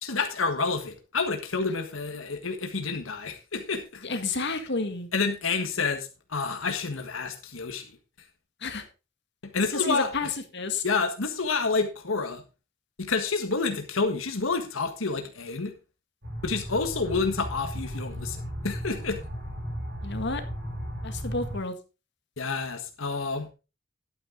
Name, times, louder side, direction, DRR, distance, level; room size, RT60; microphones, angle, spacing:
voice 1, 0.0-4.0 5.1-8.0 9.5-10.1 10.8-12.4 13.0-15.7 16.4-19.2 22.4-23.5, left 4 dB, 80° left, 5 dB, 1.5 m, -29 dB
voice 2, 4.0-5.1 8.6-8.9 9.7-10.8 20.0-20.4 21.0-21.8, left 3 dB, 60° left, 7 dB, 1.9 m, -30 dB
sound 1, 16.2-21.6, equal, 55° right, 5.7 m, -35 dB
12.0 x 8.8 x 3.8 m, 0.30 s
head